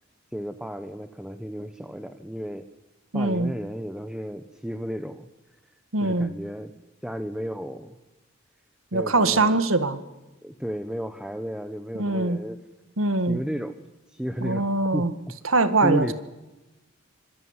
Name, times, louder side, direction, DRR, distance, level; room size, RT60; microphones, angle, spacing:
voice 1, 0.3-2.7 3.1-5.3 6.0-6.7 7.0-8.0 8.9-9.6 10.4-12.6 13.3-13.8 14.1-15.3 15.8-16.1, equal, 5° right, 9 dB, 1.1 m, -33 dB
voice 2, 3.1-3.5 5.9-6.3 8.9-10.0 11.9-12.4 13.0-13.4 14.4-15.1 15.4-16.1, right 2 dB, 80° right, 12 dB, 1.8 m, -22 dB
26.0 x 22.5 x 9.7 m, 1.0 s
head